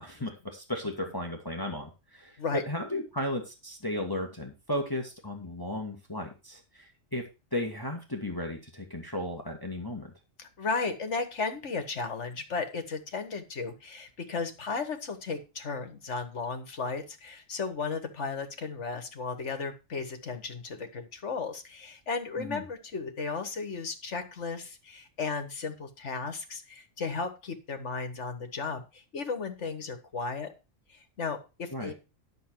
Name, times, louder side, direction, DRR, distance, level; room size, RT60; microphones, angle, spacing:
voice 1, 0.0-2.4 2.7-7.2 7.5-10.1 22.4-22.7 31.7-31.9, left 1 dB, 15° left, 2 dB, 1.8 m, -35 dB
voice 2, 10.4-30.5 30.9-31.9, left 4 dB, 65° left, 8 dB, 1.8 m, -35 dB
11.5 x 6.7 x 4.6 m, 0.29 s
omnidirectional pair, 1.3 m